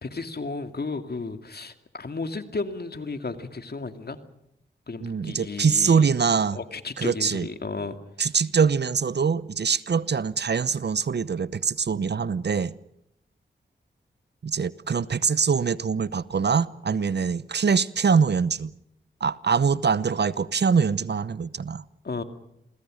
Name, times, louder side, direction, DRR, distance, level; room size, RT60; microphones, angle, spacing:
voice 1, 0.0-4.2 4.9-6.1 6.5-8.0 22.0-22.2, left 3 dB, 55° left, 2.5 m, -33 dB
voice 2, 5.0-6.6 7.0-7.5 8.2-12.7 14.4-18.7 19.2-21.8, right 6 dB, 60° right, 0.9 m, -23 dB
28.0 x 21.5 x 6.5 m
cardioid pair, 40°, 20 cm